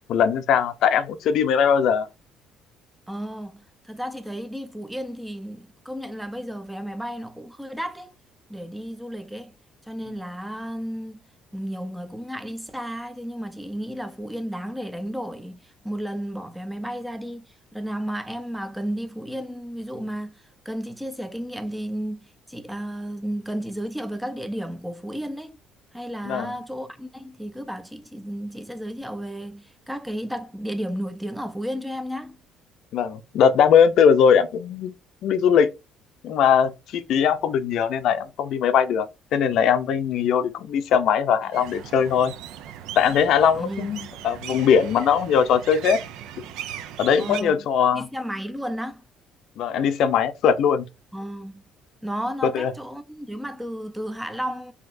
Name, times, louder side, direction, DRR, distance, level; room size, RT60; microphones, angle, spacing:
voice 1, 0.1-2.1 26.2-26.5 32.9-34.9 35.2-35.7 36.2-39.1 39.3-42.3 43.0-46.0 47.0-48.1 49.6-50.8 52.4-52.7, left 7 dB, 60° left, 0.5 m, -20 dB
voice 2, 3.1-8.1 8.5-9.5 9.9-11.2 11.5-25.6 25.9-32.4 43.5-44.0 47.2-47.6 47.9-49.0 51.1-51.6 52.0-54.7, equal, 5° right, 0.5 m, -33 dB
sound 1, 41.5-47.4, right 10 dB, 80° right, 0.5 m, -38 dB
5.8 x 2.8 x 2.6 m
cardioid pair, 140°, 0 cm